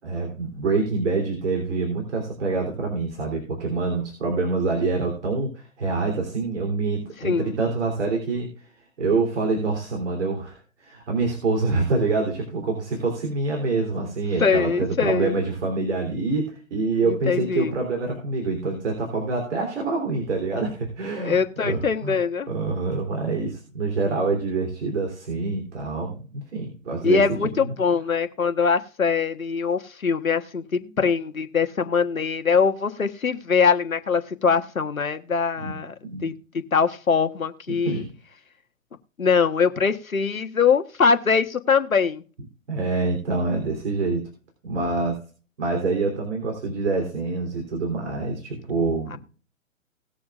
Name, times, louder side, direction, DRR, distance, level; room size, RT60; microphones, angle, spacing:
voice 1, 0.0-8.5 9.0-22.2 22.5-27.2 30.7-30.9 35.6-35.7 36.0-36.3 37.8-38.1 42.7-44.3 44.6-45.1 45.6-49.2, right 3 dB, 55° right, 1 dB, 3.5 m, -26 dB
voice 2, 7.2-7.6 14.4-15.3 17.0-17.7 21.2-22.5 27.0-35.9 36.2-36.3 36.7-38.0 39.2-42.2 49.1-49.2, left 5 dB, 85° left, 9 dB, 1.4 m, -22 dB
19.0 x 7.1 x 2.5 m, 0.38 s
figure-of-eight pair, 130°, 40 cm